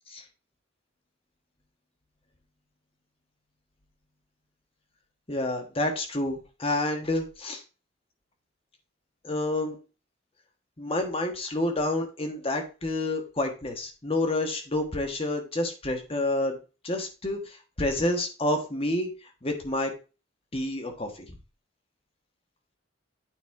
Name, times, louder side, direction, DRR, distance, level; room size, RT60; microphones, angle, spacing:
voice 1, 5.3-7.6 9.2-9.7 10.8-16.6 16.8-19.1 19.4-19.9 20.5-21.3, left 1 dB, 30° left, 4 dB, 1.4 m, -29 dB
9.1 x 4.1 x 4.7 m, 0.32 s
head